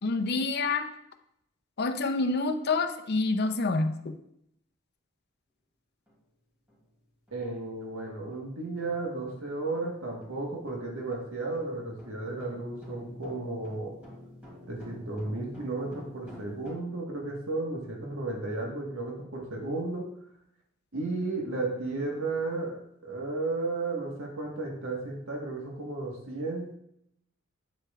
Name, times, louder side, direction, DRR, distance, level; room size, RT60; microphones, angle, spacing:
voice 1, 0.0-0.9 1.8-4.2, left 3 dB, 55° left, 7 dB, 0.6 m, -27 dB
sound 1, 6.1-6.2 6.7-6.9 7.3-16.7, left 1 dB, 10° right, 2.8 m, -50 dB
voice 2, 7.3-13.9 14.7-20.0 20.9-26.7, right 2 dB, 80° right, -1 dB, 1.6 m, -34 dB
8.7 x 8.7 x 2.4 m, 0.74 s
head